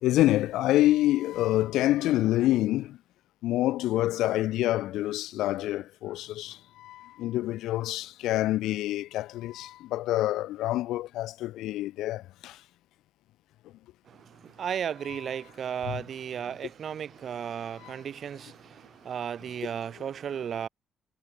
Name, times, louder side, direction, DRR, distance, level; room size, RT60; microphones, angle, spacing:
voice 1, 0.0-3.0 3.4-12.6 15.1-15.2 15.8-16.0 17.8-18.0 19.6-19.7, left 15 dB, 90° left, 2.2 m, -27 dB
voice 2, 14.6-18.6 19.0-20.7, right 8 dB, 60° right, 4.3 m, -34 dB
cardioid pair, 90°, 0 cm